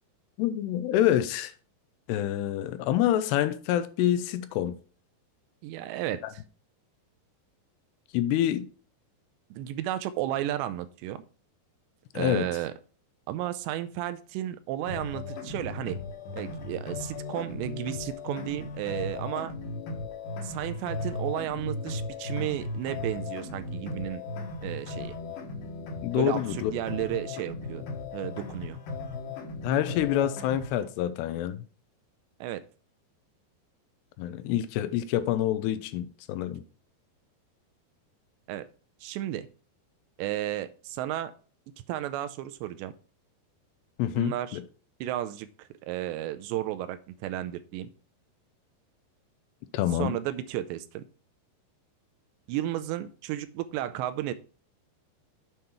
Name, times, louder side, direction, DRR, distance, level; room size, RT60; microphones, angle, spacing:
voice 1, 0.4-1.5 2.1-4.8 6.2-6.3 8.1-8.7 12.1-12.5 26.0-26.7 29.6-31.6 34.2-36.6 44.0-44.6 49.7-50.1, left 11 dB, 80° left, 2.6 m, -27 dB
voice 2, 5.6-6.4 9.5-11.2 12.1-12.7 13.3-16.0 16.3-19.5 20.4-24.2 24.6-25.2 26.1-27.9 28.1-28.8 32.4-32.6 38.5-38.7 39.0-39.5 40.2-41.3 41.9-42.9 44.2-44.6 45.0-47.9 50.0-51.0 52.5-54.3, right 13 dB, 85° right, 2.8 m, -33 dB
sound 1, 14.9-30.9, left 3 dB, 60° left, 2.6 m, -37 dB
7.9 x 5.5 x 4.4 m
omnidirectional pair, 5.0 m